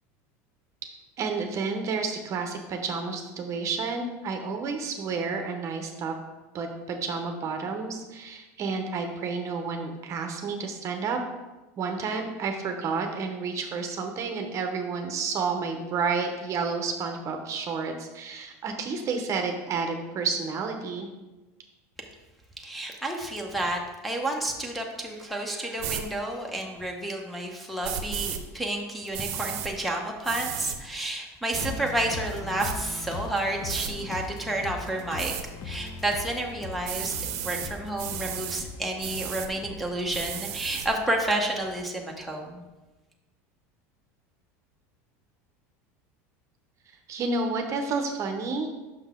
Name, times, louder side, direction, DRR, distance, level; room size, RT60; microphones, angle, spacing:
voice 1, 1.2-6.1 6.5-11.2 11.8-21.1 47.1-48.7, right 4 dB, 40° right, 4 dB, 0.8 m, -30 dB
voice 2, 22.6-35.3 35.6-37.1 37.4-42.6, right 1 dB, ahead, -1 dB, 0.9 m, -30 dB
sound 1, 25.8-26.0 27.8-28.4 29.1-29.7 30.2-30.8 31.5-31.7 32.3-32.8 33.7-33.9 35.2-35.4 36.8-37.7 38.0-38.6 39.0-39.5 40.1-40.9, right 10 dB, 75° right, 0.7 m, -33 dB
sound 2, 31.5-41.8 42.2-42.3, left 3 dB, 45° left, 0.7 m, -40 dB
6.0 x 5.4 x 3.7 m, 1.1 s
supercardioid pair, 115°, 8 cm